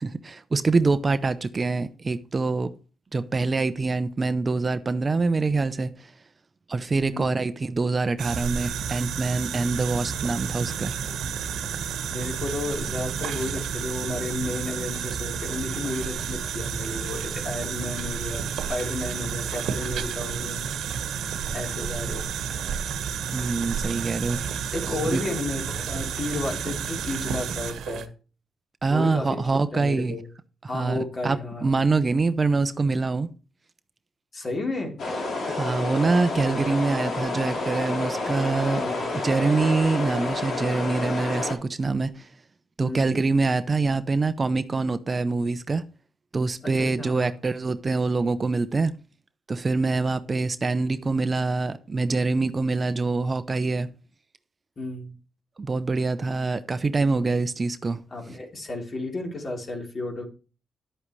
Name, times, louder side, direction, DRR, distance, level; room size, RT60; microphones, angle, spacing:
voice 1, 0.0-2.7 3.1-6.1 6.7-10.9 23.3-24.4 25.1-25.2 28.8-30.2 30.6-33.3 35.4-38.8 39.2-42.3 42.8-45.8 46.3-48.9 49.5-53.9 55.6-58.0, right 3 dB, 30° right, 0.8 m, -25 dB
sound 1, 8.2-28.1, right 7 dB, 90° right, 1.4 m, -31 dB
voice 2, 12.1-20.7 21.5-22.3 24.7-28.1 28.9-29.4 29.7-30.3 30.7-31.7 34.3-35.0 38.7-39.1 42.8-43.1 46.6-47.3 54.8-55.1 58.1-60.3, left 2 dB, 40° left, 3.7 m, -32 dB
sound 2, 35.0-41.5, left 2 dB, 60° left, 3.6 m, -29 dB
11.0 x 8.7 x 3.2 m
cardioid pair, 105°, 0 cm